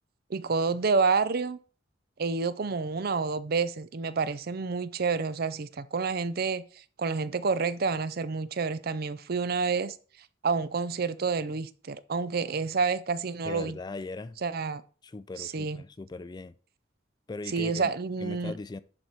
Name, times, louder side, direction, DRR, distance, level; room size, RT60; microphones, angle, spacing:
voice 1, 0.3-1.6 2.2-6.6 7.0-9.9 10.4-13.8 14.4-14.8 15.4-15.8 17.5-18.5, right 4 dB, 55° right, 0.5 m, -29 dB
voice 2, 13.4-14.4 15.0-16.5 17.3-17.9 18.2-18.8, left 3 dB, 20° left, 0.3 m, -39 dB
11.0 x 4.1 x 4.6 m
head